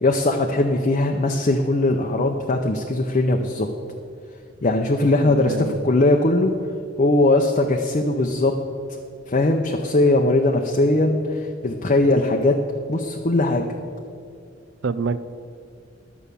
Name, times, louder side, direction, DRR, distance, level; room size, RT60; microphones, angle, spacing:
voice 1, 0.0-3.7 4.6-6.5 7.0-8.5 9.3-12.5 12.9-13.6, left 2 dB, 40° left, 2 dB, 0.7 m, -20 dB
voice 2, 5.2-5.8 14.8-15.2, right 5 dB, 70° right, 15 dB, 0.5 m, -26 dB
11.0 x 7.1 x 6.8 m, 2.3 s
head